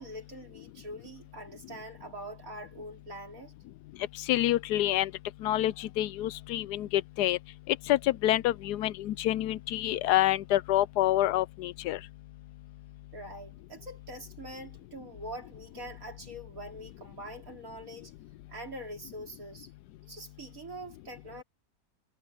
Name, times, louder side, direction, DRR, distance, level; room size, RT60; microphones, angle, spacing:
voice 1, 0.0-3.5 13.1-18.1 18.5-19.7 20.1-21.4, right 1 dB, 55° right, 4.1 m, -44 dB
voice 2, 4.3-5.1 5.4-7.4 7.7-12.0, left 14 dB, 80° left, 1.1 m, -27 dB
omnidirectional pair, 1.7 m